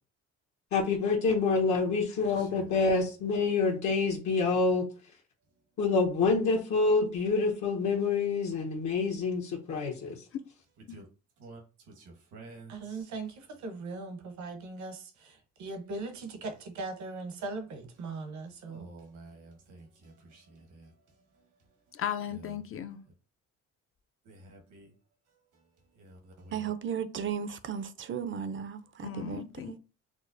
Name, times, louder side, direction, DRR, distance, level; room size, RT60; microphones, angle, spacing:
voice 1, 0.7-4.9 5.8-10.1, left 4 dB, 70° left, 1.0 m, -27 dB
voice 2, 2.2-2.8 10.9-11.1 11.4-11.6 11.9-13.1 18.6-20.9 22.3-22.6 24.2-24.9 25.9-26.7, right 2 dB, 85° right, 1.3 m, -50 dB
voice 3, 12.7-18.9, right 3 dB, 70° right, 0.9 m, -39 dB
voice 4, 21.9-23.0 29.0-29.8, left 9 dB, 45° left, 0.5 m, -36 dB
voice 5, 26.5-29.8, right 7 dB, 40° right, 0.4 m, -35 dB
5.0 x 2.0 x 2.5 m
cardioid pair, 90°, 30 cm